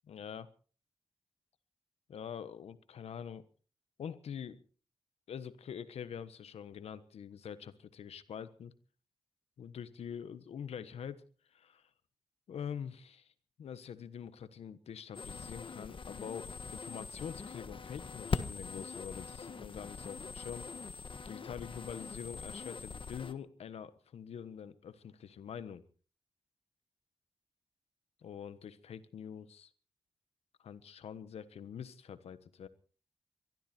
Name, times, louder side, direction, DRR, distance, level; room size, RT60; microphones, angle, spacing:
voice 1, 0.1-0.5 2.1-3.4 4.0-4.6 5.3-8.7 9.6-11.2 11.5-11.8 12.5-13.3 13.6-20.7 21.2-25.8 28.2-29.7 30.6-32.7, left 8 dB, 85° left, 14 dB, 1.3 m, -45 dB
sound 1, 15.1-23.3, left 5 dB, 55° left, 1.5 m, -42 dB
22.5 x 14.0 x 4.4 m, 0.40 s
cardioid pair, 50°, 10 cm